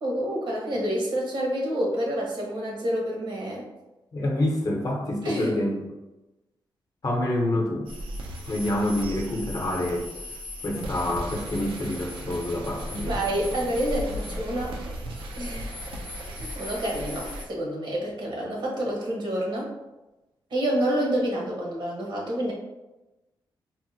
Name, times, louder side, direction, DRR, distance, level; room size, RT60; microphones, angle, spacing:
voice 1, 0.0-3.6 5.2-5.7 13.0-14.8 15.3-15.8 16.2-19.7 20.5-22.5, right 1 dB, 65° right, -2 dB, 1.0 m, -28 dB
voice 2, 4.1-5.8 7.0-7.9 8.5-10.1 10.6-13.2, left 1 dB, 45° left, 0 dB, 0.8 m, -27 dB
sound 1, 7.9-17.5, equal, 85° right, 0.5 m, -36 dB
3.6 x 2.1 x 2.7 m, 1.0 s
cardioid pair, 80°, 9 cm